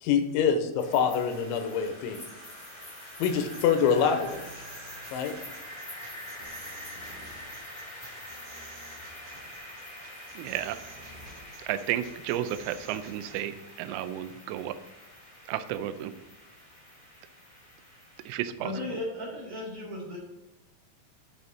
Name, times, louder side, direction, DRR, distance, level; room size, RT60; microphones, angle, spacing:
voice 1, 0.0-2.2 3.2-4.7 5.1-5.3, left 7 dB, 90° left, 7 dB, 3.1 m, -25 dB
sound 1, 0.8-18.3, left 1 dB, 20° left, 1.7 m, -45 dB
sound 2, 3.3-13.4, right 2 dB, 70° right, 3.9 m, -50 dB
voice 2, 10.4-10.8 11.6-14.8 15.5-16.1 18.3-18.7, right 12 dB, 90° right, 12 dB, 3.0 m, -32 dB
voice 3, 18.6-20.2, left 1 dB, 40° right, -5 dB, 3.9 m, -35 dB
9.6 x 5.0 x 4.1 m, 1.0 s
omnidirectional pair, 5.4 m